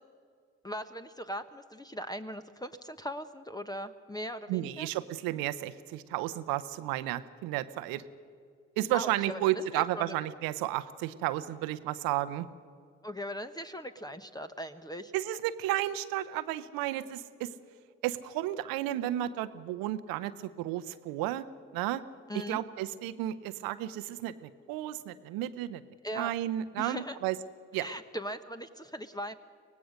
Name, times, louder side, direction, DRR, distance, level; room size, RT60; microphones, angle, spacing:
voice 1, 0.6-4.9 8.9-9.4 9.7-10.2 13.0-15.1 22.3-22.6 26.0-26.3 26.8-27.2 27.7-29.3, equal, 10° left, 9 dB, 1.1 m, -39 dB
voice 2, 4.5-8.0 8.8-12.5 15.1-17.5 18.0-21.4 21.7-22.0 22.3-25.8 26.1-27.4 27.7-27.9, right 14 dB, 80° right, 13 dB, 0.9 m, -32 dB
24.5 x 18.5 x 6.5 m, 2.2 s
hypercardioid pair, 40°, 35 cm